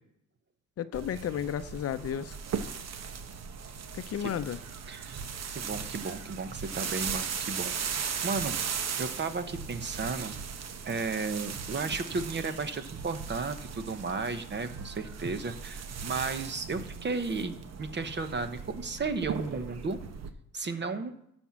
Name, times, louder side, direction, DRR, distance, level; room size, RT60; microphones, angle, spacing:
voice 1, 0.8-2.4 3.9-4.6, left 9 dB, 50° left, 12 dB, 0.6 m, -33 dB
sound 1, 0.9-20.3, right 6 dB, 60° right, 1.0 m, -38 dB
voice 2, 4.9-5.3 5.5-8.6 9.0-10.4 10.8-20.0 20.5-21.2, right 4 dB, 35° right, 10 dB, 1.0 m, -34 dB
12.5 x 4.4 x 7.5 m, 0.77 s
cardioid pair, 90°, 30 cm